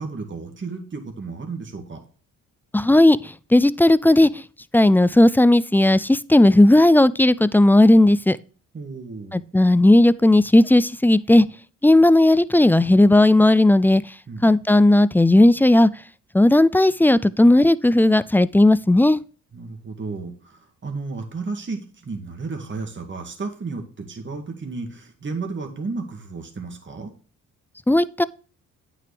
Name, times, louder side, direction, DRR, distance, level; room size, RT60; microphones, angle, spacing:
voice 1, 0.0-2.0 8.7-9.4 14.3-14.6 19.5-27.1, right 4 dB, 35° right, 2.0 m, -33 dB
voice 2, 2.7-4.4 4.7-8.4 9.3-11.5 11.8-14.0 14.4-15.9 16.3-19.2 27.9-28.2, left 1 dB, 5° left, 0.3 m, -15 dB
9.0 x 6.1 x 3.3 m
supercardioid pair, 65°, 33 cm